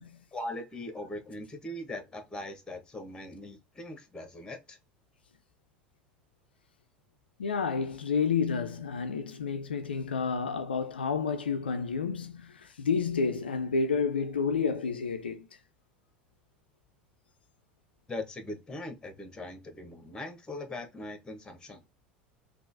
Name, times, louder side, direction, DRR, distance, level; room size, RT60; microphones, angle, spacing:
voice 1, 0.3-4.8 18.1-21.9, left 1 dB, 15° left, 1.1 m, -40 dB
voice 2, 7.4-15.5, left 5 dB, 80° left, 0.3 m, -30 dB
3.6 x 2.4 x 2.6 m
figure-of-eight pair, 75°, 5 cm